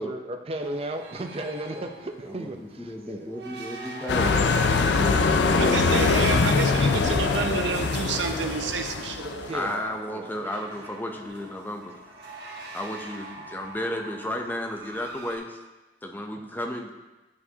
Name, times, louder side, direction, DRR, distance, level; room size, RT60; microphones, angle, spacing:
voice 1, 0.0-3.4 5.2-5.6 9.5-10.4, right 1 dB, 35° right, 5 dB, 0.6 m, -35 dB
sound 1, 0.6-15.4, right 2 dB, 65° right, 1.3 m, -44 dB
voice 2, 2.3-4.4 9.5-12.0 12.7-15.6 16.0-16.9, left 1 dB, 10° left, 3 dB, 0.5 m, -33 dB
sound 2, 4.1-9.7, left 4 dB, 75° left, 0.4 m, -23 dB
voice 3, 5.6-9.5, right 5 dB, 90° right, 5 dB, 0.6 m, -29 dB
10.0 x 4.8 x 2.8 m, 1.1 s
head